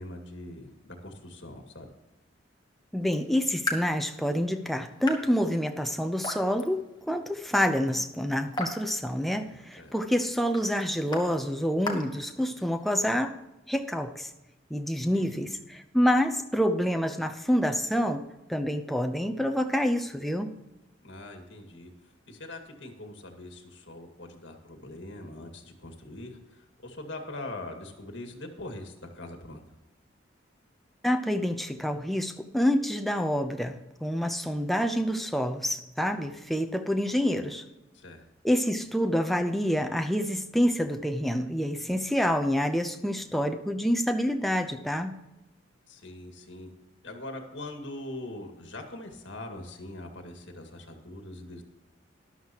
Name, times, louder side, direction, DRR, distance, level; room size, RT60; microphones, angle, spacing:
voice 1, 0.0-1.9 9.8-9.9 15.0-15.5 21.0-21.9 22.3-29.6 37.9-38.3 45.9-46.7 47.0-51.6, left 1 dB, 65° left, 4 dB, 2.1 m, -42 dB
voice 2, 2.9-13.4 13.7-14.3 14.7-18.2 18.5-20.5 31.0-37.6 38.4-45.2, equal, ahead, 5 dB, 0.7 m, -27 dB
Raindrop / Drip, 3.0-12.9, left 2 dB, 25° left, 1.5 m, -41 dB
13.5 x 11.5 x 3.0 m, 0.99 s
head